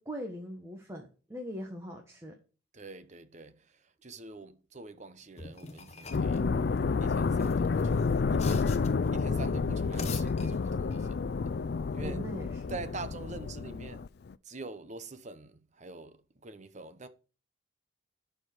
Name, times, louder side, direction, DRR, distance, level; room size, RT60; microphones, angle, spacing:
voice 1, 0.0-2.3 12.0-12.7, equal, 15° right, 1.5 m, -41 dB
voice 2, 2.7-6.5 7.0-8.8 9.1-11.2 11.4-11.6 11.9-12.3 12.7-14.1 14.4-17.1, right 3 dB, 40° right, 0.9 m, -45 dB
sound 1, 5.4-6.4 7.3-9.1 9.8-11.1, left 3 dB, 35° left, 1.2 m, -43 dB
sound 2, 6.1-14.3, left 4 dB, 55° left, 0.4 m, -29 dB
12.0 x 4.7 x 6.0 m
head